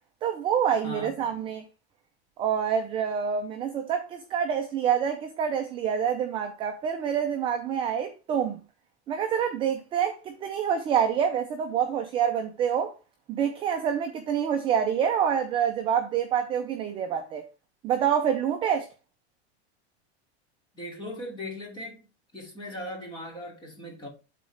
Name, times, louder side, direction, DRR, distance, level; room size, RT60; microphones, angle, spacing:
voice 1, 0.2-1.6 2.4-8.6 9.1-12.9 13.3-17.4 17.8-18.9, right 8 dB, 15° right, 0.4 m, -27 dB
voice 2, 0.8-1.2 20.7-22.0 22.3-24.1, left 1 dB, 15° left, 2.6 m, -38 dB
11.5 x 4.0 x 3.3 m
supercardioid pair, 165°, 34 cm